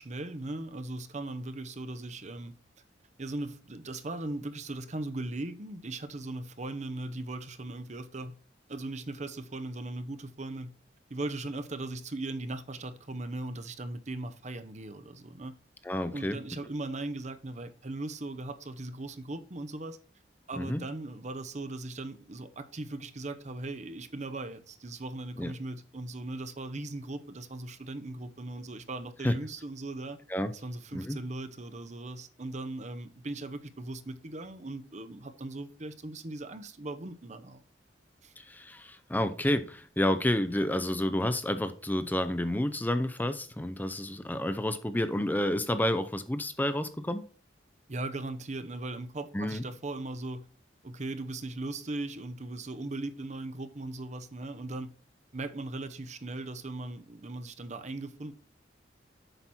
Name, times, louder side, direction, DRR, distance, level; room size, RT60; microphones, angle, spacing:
voice 1, 0.0-2.5 3.2-8.4 8.7-10.7 11.1-15.5 16.1-20.0 20.5-30.2 30.6-37.6 38.2-38.3 47.9-50.5 50.8-54.9 55.3-58.3, right 2 dB, 40° right, 0.8 m, -38 dB
voice 2, 15.8-16.4 20.6-20.8 25.4-25.5 29.2-29.3 30.3-30.5 30.9-31.2 38.4-47.3 49.3-49.6, left 1 dB, 10° left, 0.5 m, -30 dB
8.0 x 5.9 x 4.2 m
head